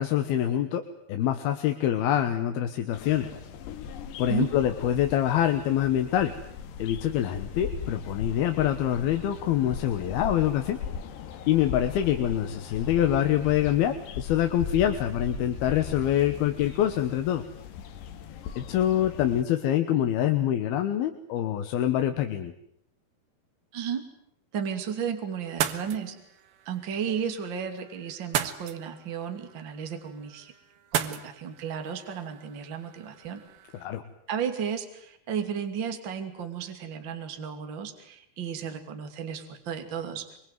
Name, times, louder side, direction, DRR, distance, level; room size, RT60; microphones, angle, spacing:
voice 1, 0.0-3.3 4.2-6.3 6.8-10.8 11.5-17.5 18.6-22.5 33.8-34.0, left 11 dB, 70° left, 7 dB, 3.0 m, -25 dB
sound 1, 2.9-19.4, left 7 dB, 85° left, 3.9 m, -39 dB
voice 2, 23.7-24.0 24.5-26.1 26.6-30.5 30.9-33.4 34.3-40.3, right 7 dB, 30° right, 6 dB, 2.8 m, -33 dB
sound 2, 25.4-33.8, right 10 dB, 70° right, 3.2 m, -37 dB
25.0 x 24.5 x 9.3 m, 0.73 s
omnidirectional pair, 4.8 m